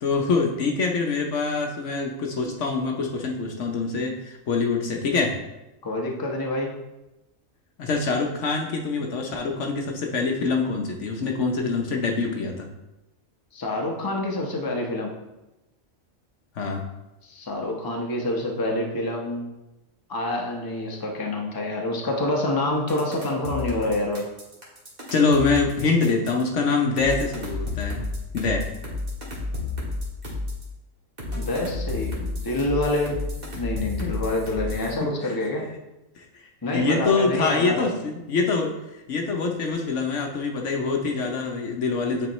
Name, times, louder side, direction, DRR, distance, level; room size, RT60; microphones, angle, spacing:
voice 1, 0.0-5.4 7.8-12.7 16.5-16.8 25.1-28.0 28.3-28.7 35.0-35.4 36.2-42.3, left 4 dB, 65° left, 2 dB, 1.0 m, -25 dB
voice 2, 5.8-6.7 13.5-15.1 17.2-19.5 20.1-24.2 31.3-33.2 33.6-35.6 36.6-37.8, left 1 dB, 20° left, 0 dB, 0.8 m, -27 dB
sound 1, 22.9-26.4 27.0-30.6 31.2-34.9, left 2 dB, 35° right, 1.7 m, -31 dB
8.9 x 4.5 x 3.1 m, 0.97 s
omnidirectional pair, 1.4 m